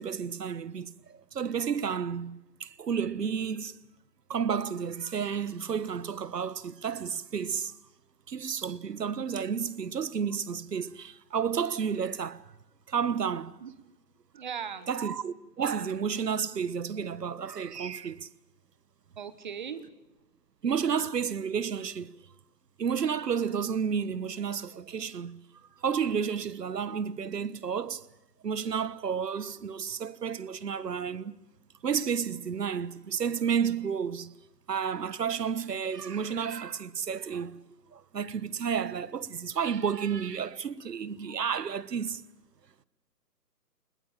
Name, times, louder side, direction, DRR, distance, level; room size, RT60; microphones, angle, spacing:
voice 1, 0.0-3.8 4.3-7.7 8.3-12.5 12.9-13.6 14.9-18.3 20.6-22.2 22.8-25.4 25.8-28.0 28.4-31.3 31.8-34.3 34.7-37.6 37.9-42.2, right 7 dB, 70° right, 1.3 m, -31 dB
voice 2, 14.3-14.9 19.2-19.8, right 7 dB, 30° right, 1.3 m, -38 dB
25.5 x 21.0 x 7.3 m
hypercardioid pair, 165°, 50 cm